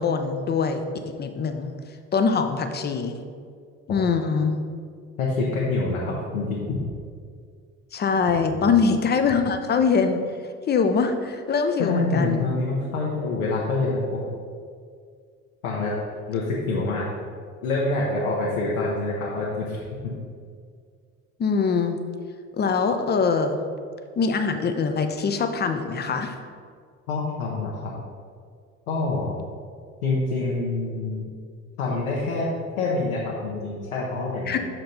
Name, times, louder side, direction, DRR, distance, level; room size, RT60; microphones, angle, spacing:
voice 1, 0.0-1.7 2.1-3.2 3.9-4.6 7.9-10.2 10.7-12.5 21.4-22.0 22.6-23.6 24.2-26.4 34.5-34.6, left 5 dB, 25° left, 7 dB, 0.6 m, -23 dB
voice 2, 5.2-6.8 8.5-8.6 11.8-14.2 15.6-15.9 16.3-17.0 17.6-19.8 27.1-27.9 28.9-29.4 30.0-31.2 31.8-32.5 32.8-34.6, left 3 dB, 80° left, -4 dB, 1.0 m, -26 dB
6.3 x 4.4 x 4.0 m, 2.1 s
figure-of-eight pair, 60°, 41 cm